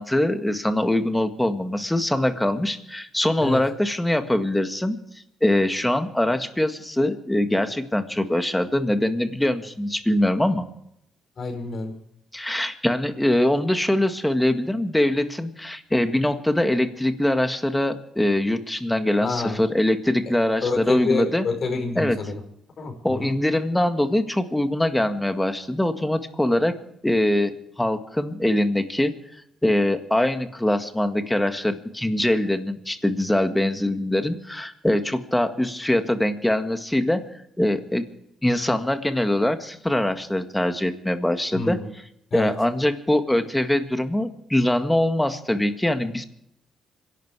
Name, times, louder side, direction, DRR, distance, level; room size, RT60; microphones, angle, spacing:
voice 1, 0.0-5.0 5.4-10.7 12.3-21.5 22.0-22.2 23.0-37.2 37.6-38.1 38.4-41.8 42.3-46.2, left 1 dB, 5° left, 8 dB, 1.8 m, -23 dB
voice 2, 11.4-11.9 19.2-19.6 20.3-20.4 20.6-22.4 22.8-23.3 41.5-41.9 42.3-42.5, left 3 dB, 50° left, 4 dB, 5.1 m, -27 dB
26.0 x 11.5 x 4.8 m, 0.76 s
cardioid pair, 90°, 0 cm